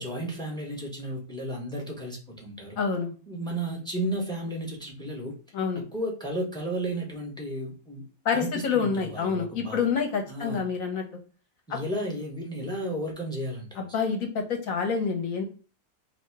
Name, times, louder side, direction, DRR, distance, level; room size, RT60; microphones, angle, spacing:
voice 1, 0.0-2.8 3.3-5.4 5.7-8.0 8.3-9.9 10.3-10.6 11.7-13.8, right 1 dB, 5° left, 0 dB, 0.5 m, -33 dB
voice 2, 2.8-3.1 5.5-5.8 8.2-11.0 11.7-11.8 13.8-15.4, left 5 dB, 60° left, 3 dB, 1.0 m, -27 dB
3.0 x 2.7 x 4.5 m, 0.36 s
omnidirectional pair, 1.9 m